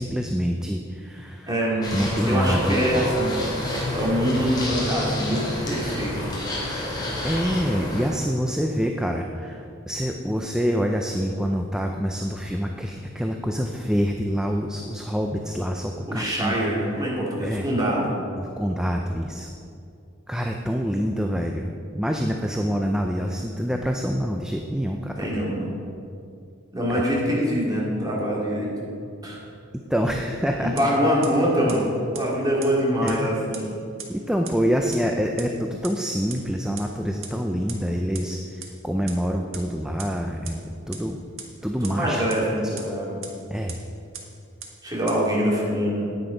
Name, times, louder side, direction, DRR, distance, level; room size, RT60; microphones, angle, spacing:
voice 1, 0.0-1.5 1.9-3.2 7.2-16.6 17.4-17.7 18.4-19.5 20.3-25.4 26.9-27.0 29.9-30.7 33.0-33.3 34.1-40.6 40.9-41.2 41.6-42.2 43.5-43.8, equal, 5° right, 2 dB, 0.4 m, -26 dB
voice 2, 1.5-2.0 2.3-3.4 3.9-6.3 16.1-18.2 25.2-25.7 26.7-28.7 29.2-29.4 30.6-33.8 41.8-43.2 44.8-46.0, equal, 20° right, -4 dB, 2.4 m, -24 dB
sound 1, 1.8-8.1, left 1 dB, 20° left, 2.5 m, -29 dB
sound 2, 30.8-30.9 31.2-31.3 31.7-31.8 32.1-32.2 32.6-32.7 33.1-33.2 33.5-33.6 34.0-34.1 34.5-34.6 34.9-35.0 35.4-35.5 35.8-35.9 36.3-36.4 36.8-36.9 37.2-37.3 37.7-37.8 38.1-38.2 38.6-38.7 39.1-39.2 39.5-39.6 40.0-40.1 40.4-40.5 40.9-41.0 41.4-41.5 41.8-41.9 42.3-42.4 42.8-42.9 43.2-43.3 43.7-43.8 44.1-44.2 44.6-44.7 45.1-45.2, right 9 dB, 85° right, 1.4 m, -36 dB
9.8 x 8.9 x 5.1 m, 2.5 s
head